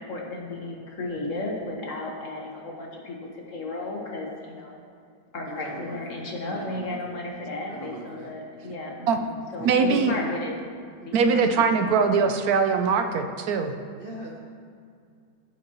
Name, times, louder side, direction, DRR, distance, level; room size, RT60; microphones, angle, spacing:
voice 1, 0.1-4.8 5.3-10.5 11.0-11.8, left 2 dB, 55° left, -1 dB, 1.7 m, -34 dB
voice 2, 5.4-7.3 7.7-8.3 9.6-10.3 11.0-11.7 14.0-14.4, right 2 dB, 50° right, -1 dB, 0.7 m, -40 dB
voice 3, 9.6-10.1 11.1-13.7, right 5 dB, 75° right, 7 dB, 1.1 m, -22 dB
15.5 x 7.5 x 3.0 m, 2.3 s
omnidirectional pair, 1.7 m